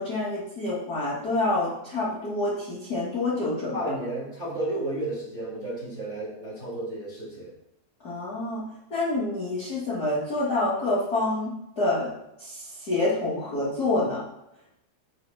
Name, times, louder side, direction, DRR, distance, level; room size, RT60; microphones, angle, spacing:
voice 1, 0.0-3.8 8.0-12.1 12.4-14.2, left 2 dB, 75° left, -8 dB, 0.8 m, -27 dB
voice 2, 3.7-7.5, right 1 dB, 30° right, -6 dB, 1.3 m, -32 dB
7.7 x 3.2 x 6.0 m, 0.83 s
omnidirectional pair, 4.2 m